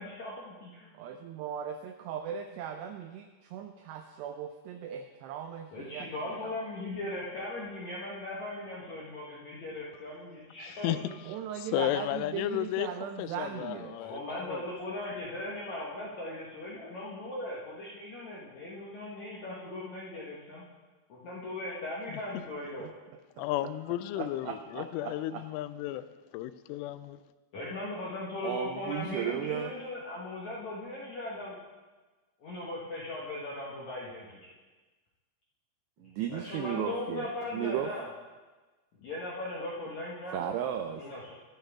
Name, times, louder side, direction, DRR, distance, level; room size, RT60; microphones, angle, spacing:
voice 1, 0.0-0.9 5.7-10.9 14.0-20.6 21.1-22.9 27.5-31.6 32.4-34.5 36.3-38.0 39.0-40.5 41.0-41.3, left 2 dB, 75° left, -5 dB, 1.7 m, -38 dB
voice 2, 0.9-6.5 10.9-14.0 22.8-22.9 24.2-25.4 28.4-29.7 36.0-37.9 40.3-41.0, right 9 dB, 85° right, 6 dB, 2.4 m, -37 dB
voice 3, 10.6-11.0 11.6-12.9 13.2-14.6 23.4-26.0 26.3-27.2, left 14 dB, 90° left, 14 dB, 3.1 m, -33 dB
22.0 x 7.8 x 3.6 m, 1.2 s
omnidirectional pair, 5.5 m